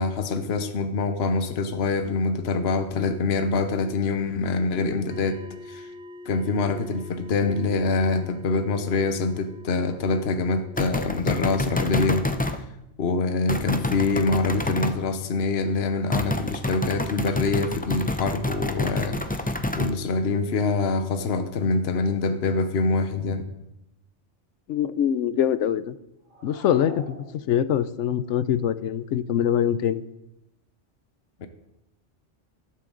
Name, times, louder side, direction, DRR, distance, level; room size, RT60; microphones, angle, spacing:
voice 1, 0.0-5.9 6.2-12.7 13.0-19.5 19.8-23.4 31.4-31.5, left 3 dB, 60° left, 8 dB, 1.1 m, -25 dB
sound 1, 5.1-10.8, left 2 dB, 70° right, 3.0 m, -44 dB
sound 2, 10.8-12.6 13.5-15.0 16.1-19.9, left 1 dB, 10° left, 0.4 m, -28 dB
voice 2, 24.7-25.9 26.4-27.0 27.5-30.0, left 9 dB, 85° left, 15 dB, 1.0 m, -23 dB
sound 3, 26.2-27.9, equal, 25° right, 3.9 m, -43 dB
13.5 x 12.5 x 3.9 m, 0.88 s
omnidirectional pair, 1.2 m